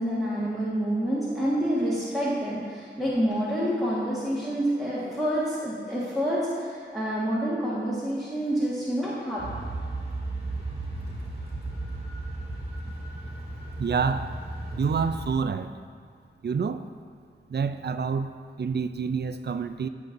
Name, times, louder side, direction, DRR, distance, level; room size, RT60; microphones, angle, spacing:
voice 1, 0.0-9.4, equal, ahead, -10 dB, 1.6 m, -28 dB
sound 1, 9.4-15.3, right 2 dB, 30° right, 1.7 m, -35 dB
voice 2, 13.8-14.3 14.8-15.7 16.4-16.8 17.5-18.3 18.6-19.9, right 5 dB, 60° right, 10 dB, 0.4 m, -27 dB
15.0 x 5.9 x 2.7 m, 2.2 s
wide cardioid pair, 80°, 20 cm